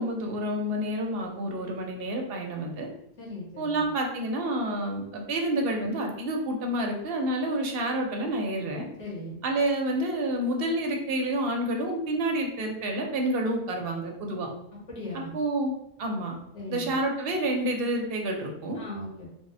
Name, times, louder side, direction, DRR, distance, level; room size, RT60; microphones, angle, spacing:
voice 1, 0.0-2.9 3.6-8.8 9.4-14.5 15.1-15.7 16.0-16.4 16.7-18.8, right 1 dB, 60° right, 2 dB, 0.7 m, -29 dB
voice 2, 3.2-3.9 9.0-9.4 14.9-15.3 16.5-16.9 18.7-19.3, left 1 dB, 85° left, -6 dB, 1.5 m, -38 dB
3.4 x 2.0 x 2.6 m, 0.81 s
omnidirectional pair, 1.2 m